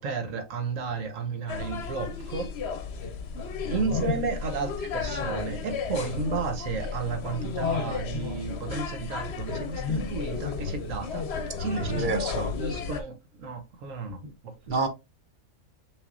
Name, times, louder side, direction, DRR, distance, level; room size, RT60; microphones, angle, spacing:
voice 1, 0.0-2.5 3.7-11.2 11.6-12.3 12.5-14.5, right 4 dB, 70° right, 1.4 m, -33 dB
sound 1, 1.5-13.0, left 5 dB, 60° left, 0.9 m, -33 dB
voice 2, 11.8-12.5 14.2-14.3 14.7-14.9, right 3 dB, 45° right, 0.8 m, -28 dB
5.6 x 3.4 x 2.6 m
omnidirectional pair, 1.4 m